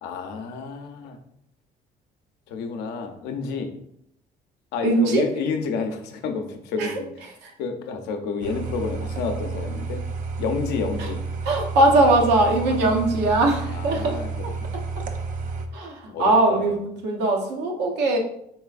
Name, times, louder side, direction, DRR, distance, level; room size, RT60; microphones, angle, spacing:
voice 1, 0.0-1.2 2.5-3.7 4.7-7.3 7.6-10.0 10.4-11.2 12.7-12.8 13.7-14.7 16.1-16.8, left 5 dB, 85° left, 6 dB, 0.6 m, -30 dB
voice 2, 4.8-5.2 6.8-7.0 7.4-7.5 11.0-11.1 11.4-14.5 15.7-18.2, right 2 dB, 85° right, 1 dB, 0.8 m, -21 dB
sound 1, 8.4-15.7, right 4 dB, 50° right, 0.5 m, -31 dB
4.4 x 3.3 x 2.4 m, 0.73 s
cardioid pair, 110°, 17 cm